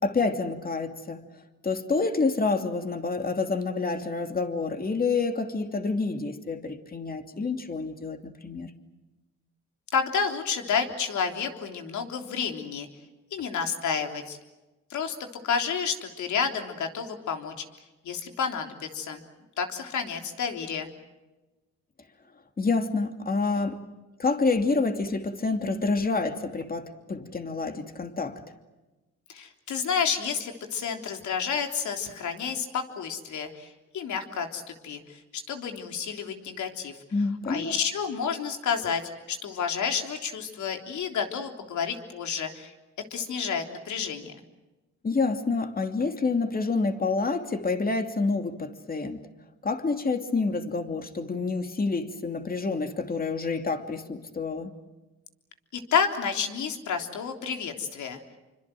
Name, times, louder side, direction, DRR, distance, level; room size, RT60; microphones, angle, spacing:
voice 1, 0.0-1.2 1.6-8.7 22.6-23.8 24.2-28.4 37.1-37.7 45.0-49.2 49.6-54.7, left 3 dB, 30° left, 2.7 m, -28 dB
voice 2, 9.9-12.9 13.3-14.4 14.9-15.2 15.4-17.6 18.0-19.2 19.6-20.9 29.3-33.7 33.9-35.2 35.5-37.0 37.5-39.0 39.3-42.7 43.1-44.3 55.7-58.2, left 6 dB, 70° left, 3.5 m, -30 dB
27.0 x 25.0 x 7.8 m
cardioid pair, 90°, 30 cm